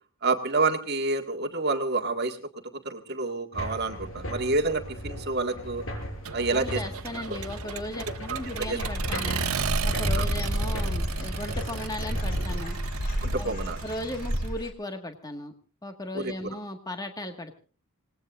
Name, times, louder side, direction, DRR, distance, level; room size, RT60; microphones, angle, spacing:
voice 1, 0.2-2.4 2.9-5.8 6.3-6.8 7.3-7.4 8.3-8.8 10.1-10.3 13.2-13.8 16.1-16.3, right 3 dB, 50° right, 4 dB, 1.9 m, -28 dB
sound 1, 3.5-12.6, equal, 60° left, 6.6 m, -38 dB
Accelerating revving vroom, 6.2-14.5, right 5 dB, 80° right, 1.2 m, -35 dB
voice 2, 6.5-9.4 9.8-12.8 13.4-13.6 13.8-15.5 15.8-17.5, left 1 dB, 15° left, 6 dB, 1.7 m, -36 dB
Dog / Bird, 8.4-14.7, equal, 40° left, 3.5 m, -31 dB
26.5 x 19.5 x 2.5 m, 0.36 s
head